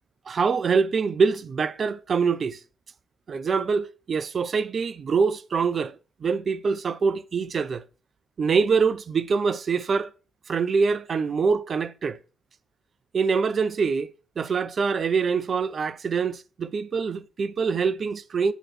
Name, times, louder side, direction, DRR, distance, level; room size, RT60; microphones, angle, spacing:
voice 1, 0.3-2.6 3.3-7.8 8.4-10.1 10.5-12.2 13.1-18.5, right 5 dB, 40° right, 0.4 m, -24 dB
8.0 x 3.1 x 4.4 m
figure-of-eight pair, 45°, 0 cm